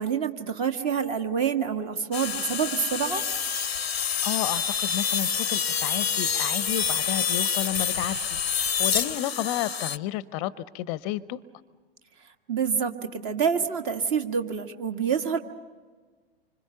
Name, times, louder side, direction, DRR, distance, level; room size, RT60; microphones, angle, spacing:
voice 1, 0.0-3.2 12.5-15.4, right 7 dB, 45° right, 7 dB, 1.6 m, -27 dB
sound 1, 2.1-10.0, left 7 dB, 85° left, 0.6 m, -27 dB
voice 2, 3.9-11.4, left 14 dB, 35° left, 18 dB, 0.6 m, -32 dB
26.0 x 25.5 x 5.7 m, 1.4 s
figure-of-eight pair, 90°, 30 cm